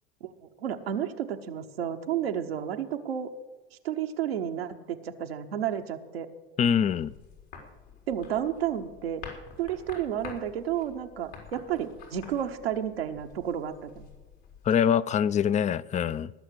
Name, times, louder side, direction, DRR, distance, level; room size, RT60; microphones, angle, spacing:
voice 1, 0.6-3.3 3.8-6.3 8.1-9.2 9.6-14.1, right 9 dB, 90° right, 4 dB, 1.0 m, -31 dB
voice 2, 6.6-7.1 14.7-16.3, left 8 dB, 25° left, 19 dB, 0.5 m, -24 dB
sound 1, 7.0-14.8, left 6 dB, 70° left, 4.1 m, -48 dB
19.0 x 6.5 x 8.1 m, 1.2 s
hypercardioid pair, 80°, 29 cm